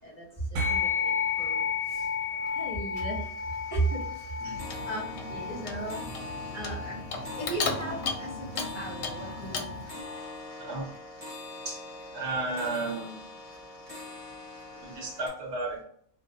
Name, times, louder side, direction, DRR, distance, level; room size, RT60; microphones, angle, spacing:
voice 1, 0.0-2.1 2.4-3.3 3.7-6.1 6.5-7.0 7.4-9.6 9.9-10.4, right 2 dB, 15° right, -4 dB, 0.8 m, -36 dB
sound 1, 0.6-10.2, left 6 dB, 85° right, 1.0 m, -33 dB
sound 2, 0.9-1.0 1.3-1.9 2.3-2.6 2.9-15.3, left 2 dB, 5° left, 1.0 m, -44 dB
Clock, 4.4-9.9, left 3 dB, 65° left, 0.8 m, -36 dB
voice 2, 12.1-13.1 14.8-15.8, right 3 dB, 60° right, -1 dB, 1.1 m, -33 dB
2.4 x 2.1 x 2.6 m, 0.63 s
omnidirectional pair, 1.3 m